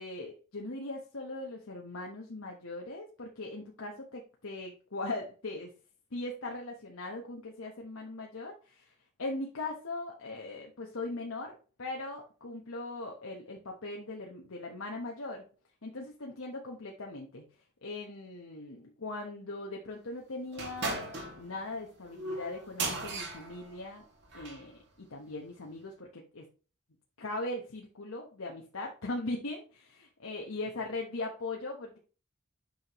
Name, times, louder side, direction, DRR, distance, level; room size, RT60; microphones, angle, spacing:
voice 1, 0.0-5.7 6.1-8.9 9.2-15.5 15.8-17.4 17.8-21.1 21.4-24.0 24.3-26.4 27.2-32.0, left 2 dB, 85° left, 0 dB, 1.2 m, -40 dB
sound 1, 20.5-24.7, right 3 dB, 55° right, 2.4 m, -38 dB
8.6 x 5.8 x 3.1 m, 0.35 s
head